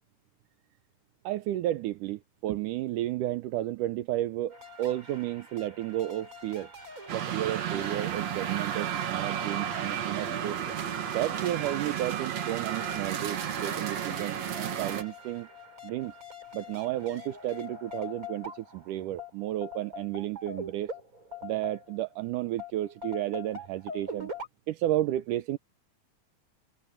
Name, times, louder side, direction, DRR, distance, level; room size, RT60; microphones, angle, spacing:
voice 1, 1.2-6.7 7.1-10.6 11.1-15.5 15.8-16.1 16.5-20.9 21.4-24.3 24.7-25.6, right 14 dB, 80° right, 2.1 m, -32 dB
sound 1, 4.5-22.1 22.6-24.5, left 2 dB, 20° right, 6.6 m, -44 dB
sound 2, 7.1-15.0, right 9 dB, 55° right, 2.7 m, -32 dB
omnidirectional pair, 4.0 m